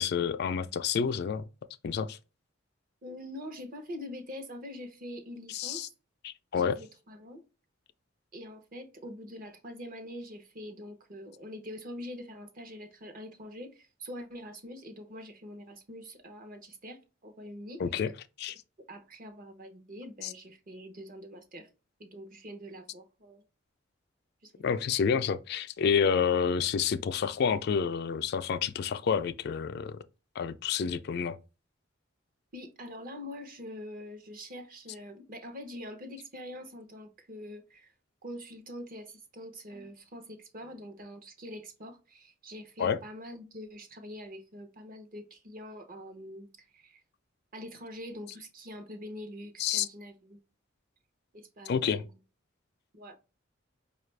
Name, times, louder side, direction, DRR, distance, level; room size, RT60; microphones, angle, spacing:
voice 1, 0.0-1.5 1.8-2.2 5.5-5.9 6.2-6.8 17.8-18.1 18.4-18.5 20.2-20.3 24.6-30.0 30.4-31.4 42.8-43.0 49.6-49.9 51.7-52.0, left 7 dB, 55° left, 0.3 m, -29 dB
voice 2, 3.0-5.9 6.6-7.4 8.3-17.8 18.9-21.7 22.0-23.4 24.4-24.8 32.5-37.9 38.2-46.5 46.7-47.0 47.5-50.4 51.3-52.0 52.9-53.2, equal, 45° right, 0.8 m, -44 dB
5.1 x 2.4 x 3.2 m
head